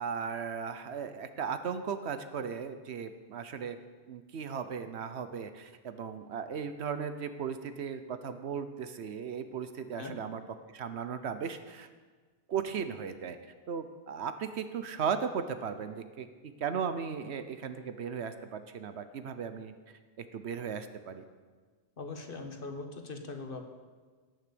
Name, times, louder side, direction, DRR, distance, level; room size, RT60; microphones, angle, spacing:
voice 1, 0.0-3.8 4.1-10.4 10.7-11.9 12.5-13.4 13.7-16.3 16.6-19.7 20.2-21.2, right 7 dB, 75° right, 10 dB, 1.1 m, -36 dB
voice 2, 22.0-23.6, left 3 dB, 55° left, 5 dB, 1.4 m, -41 dB
17.5 x 6.4 x 6.9 m, 1.4 s
omnidirectional pair, 1.1 m